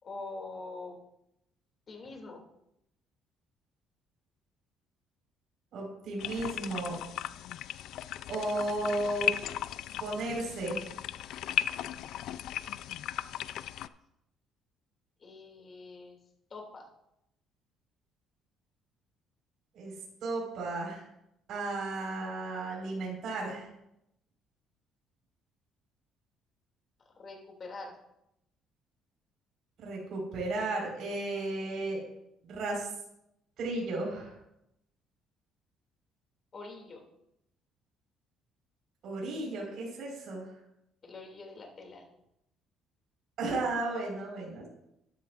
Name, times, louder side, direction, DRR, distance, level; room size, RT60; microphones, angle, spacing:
voice 1, 0.0-1.0 1.9-2.4 15.2-16.2 16.5-16.9 27.2-27.9 36.5-37.0 41.0-42.1, left 3 dB, 40° left, 1 dB, 2.5 m, -44 dB
voice 2, 5.7-7.0 8.3-9.3 10.0-10.9 19.7-19.9 20.2-21.0 21.5-23.7 29.8-32.0 32.4-32.9 33.6-34.3 39.0-40.5 43.4-44.7, right 2 dB, 60° right, -2 dB, 4.4 m, -34 dB
sound 1, 6.2-13.9, left 12 dB, 70° left, 0.3 m, -36 dB
13.0 x 11.5 x 2.5 m, 0.82 s
cardioid pair, 115°, 0 cm